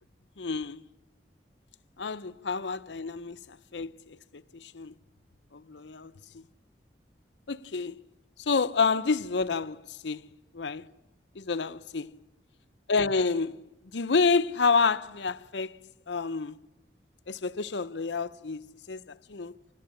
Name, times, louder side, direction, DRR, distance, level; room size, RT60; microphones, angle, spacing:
voice 1, 0.4-0.8 2.0-4.9 5.5-6.5 7.5-8.0 8.4-10.2 10.5-10.9 11.3-12.2 12.9-15.8 16.1-16.6 17.3-19.5, left 4 dB, 80° left, 0.7 m, -29 dB
26.0 x 18.5 x 8.8 m
head